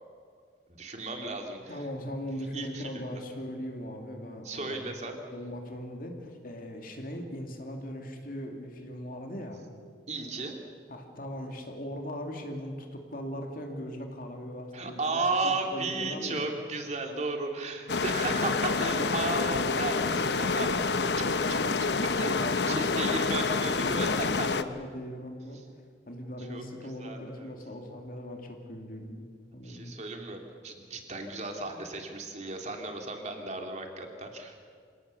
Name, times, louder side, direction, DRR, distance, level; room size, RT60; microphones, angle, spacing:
voice 1, 0.8-1.9 2.5-3.0 4.4-5.2 10.1-10.5 14.7-20.8 22.0-24.1 24.4-24.5 26.4-27.5 29.6-34.6, right 3 dB, 40° right, 3 dB, 2.8 m, -34 dB
voice 2, 1.7-4.8 5.1-9.7 10.9-16.5 22.1-22.9 23.8-25.6 26.1-29.2 29.5-29.9, equal, 55° left, 3 dB, 2.7 m, -39 dB
sound 1, 17.9-24.6, left 4 dB, 70° left, 0.9 m, -28 dB
27.0 x 18.0 x 7.0 m, 2.1 s
head